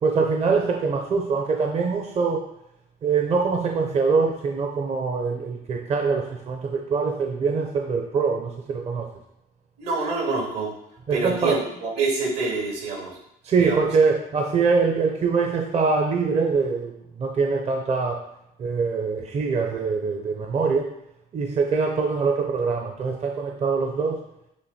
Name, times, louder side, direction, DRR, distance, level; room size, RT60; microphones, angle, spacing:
voice 1, 0.0-2.4 3.0-9.1 11.1-11.6 13.4-18.2 18.6-20.9 21.3-24.2, right 4 dB, 40° right, 2 dB, 0.7 m, -23 dB
voice 2, 9.8-10.7 11.1-13.1 13.6-13.8, right 3 dB, 80° right, -2 dB, 2.6 m, -26 dB
8.4 x 3.0 x 4.2 m, 0.80 s
cardioid pair, 110°, 17 cm